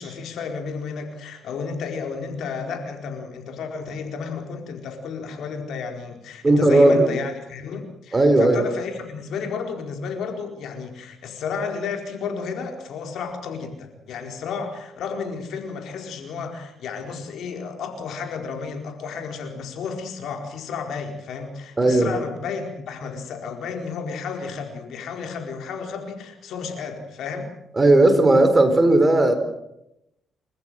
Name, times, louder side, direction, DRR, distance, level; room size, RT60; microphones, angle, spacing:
voice 1, 0.0-27.5, left 5 dB, 75° left, 4 dB, 4.5 m, -32 dB
voice 2, 6.4-7.1 8.1-8.6 21.8-22.1 27.8-29.3, right 2 dB, 20° right, 8 dB, 4.4 m, -16 dB
30.0 x 14.5 x 7.8 m, 0.84 s
cardioid pair, 90°, 0 cm